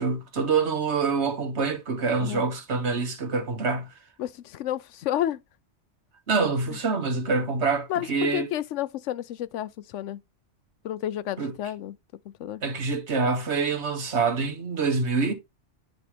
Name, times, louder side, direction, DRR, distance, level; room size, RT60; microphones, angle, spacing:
voice 1, 0.0-3.9 6.3-8.5 11.4-11.5 12.6-15.3, right 4 dB, 70° right, 1.6 m, -26 dB
voice 2, 4.2-5.4 7.9-10.2 10.8-11.9 12.4-12.6, left 12 dB, 85° left, 0.9 m, -31 dB
9.2 x 3.1 x 5.0 m
omnidirectional pair, 1.2 m